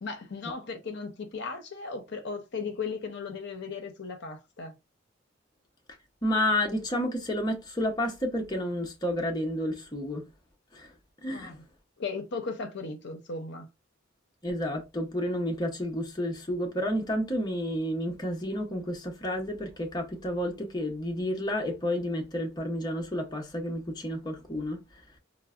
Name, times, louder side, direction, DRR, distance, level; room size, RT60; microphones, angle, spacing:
voice 1, 0.0-4.7 11.3-11.6 12.0-13.7, left 4 dB, 60° left, 0.6 m, -36 dB
voice 2, 6.2-10.3 10.7-10.9 11.2-11.6 14.4-25.2, left 1 dB, 20° left, 0.7 m, -31 dB
4.4 x 2.0 x 2.3 m
head